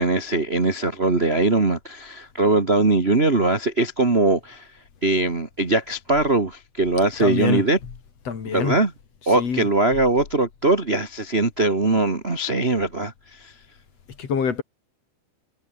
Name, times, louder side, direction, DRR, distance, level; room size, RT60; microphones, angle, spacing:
voice 1, 0.0-4.7 5.0-7.8 8.5-8.9 9.2-13.5, right 2 dB, 20° right, 1.7 m, -21 dB
voice 2, 7.2-7.6 8.3-8.8 9.4-9.7 14.2-14.6, left 6 dB, 45° left, 3.6 m, -25 dB
omnidirectional pair, 4.5 m